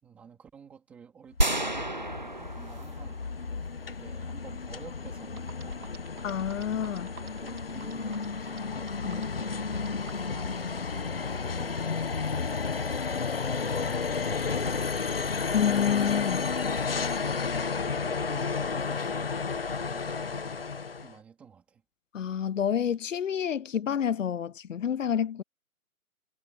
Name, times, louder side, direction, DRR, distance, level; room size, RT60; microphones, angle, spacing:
voice 1, 0.0-3.2 3.9-6.1 7.2-15.4 16.9-21.8, right 6 dB, 5° right, 3.5 m, -51 dB
sound 1, 1.3-21.1, left 5 dB, 40° left, 1.3 m, -32 dB
sound 2, 1.4-3.7, right 1 dB, 30° right, 0.7 m, -30 dB
sound 3, 5.4-10.3, right 5 dB, 80° right, 3.1 m, -48 dB
voice 2, 6.2-7.1 9.0-9.2 15.5-16.4 22.1-25.4, left 8 dB, 60° left, 0.5 m, -28 dB
hypercardioid pair, 180°, 43 cm